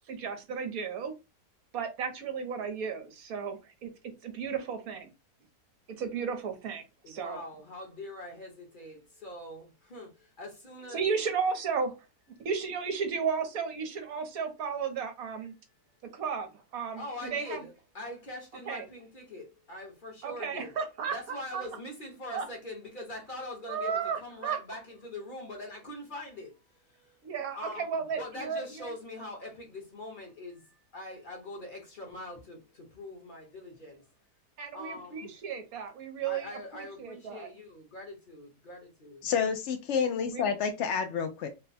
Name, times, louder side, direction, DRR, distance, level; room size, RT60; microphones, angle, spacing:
voice 1, 0.1-1.1 1.7-3.9 4.2-5.1 6.0-7.4 10.9-12.0 12.4-15.5 16.1-17.6 18.7-18.9 20.2-21.7 22.3-22.5 23.7-24.6 27.2-28.9 34.6-37.5 40.3-40.5, right 6 dB, 60° right, 1.2 m, -34 dB
voice 2, 7.0-11.0 16.1-16.2 17.0-20.7 21.1-26.6 26.9-27.2 27.6-34.0 34.7-35.3 36.3-39.3, left 1 dB, 35° left, 1.0 m, -43 dB
voice 3, 39.2-41.5, left 6 dB, 80° left, 0.6 m, -29 dB
3.4 x 2.2 x 4.0 m
omnidirectional pair, 1.8 m